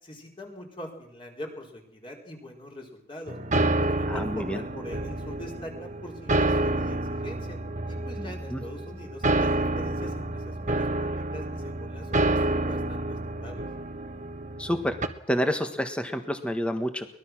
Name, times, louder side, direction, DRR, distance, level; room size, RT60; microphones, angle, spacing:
voice 1, 0.0-3.3 3.8-7.6 7.8-13.6, left 1 dB, 25° left, 0 dB, 4.6 m, -42 dB
sound 1, 3.3-15.1, right 2 dB, 40° right, 1.4 m, -28 dB
voice 2, 4.1-4.6 8.2-8.6 14.6-15.0 15.3-17.1, equal, 5° left, 7 dB, 1.5 m, -29 dB
23.0 x 20.0 x 6.2 m, 0.69 s
head